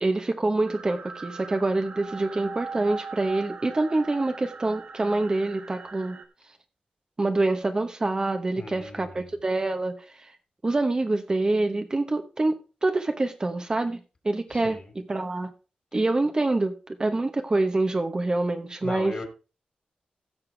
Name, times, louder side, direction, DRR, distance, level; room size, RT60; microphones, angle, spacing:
voice 1, 0.0-6.2 7.2-10.3 10.6-12.5 12.8-14.0 14.2-15.5 15.9-19.2, right 2 dB, 25° right, 1.0 m, -26 dB
sound 1, 0.7-6.3, right 4 dB, 60° right, 1.4 m, -40 dB
voice 2, 8.6-9.4 14.5-14.9 18.8-19.3, left 3 dB, 45° left, 2.7 m, -38 dB
16.0 x 6.7 x 3.3 m
wide cardioid pair, 125°, 3 cm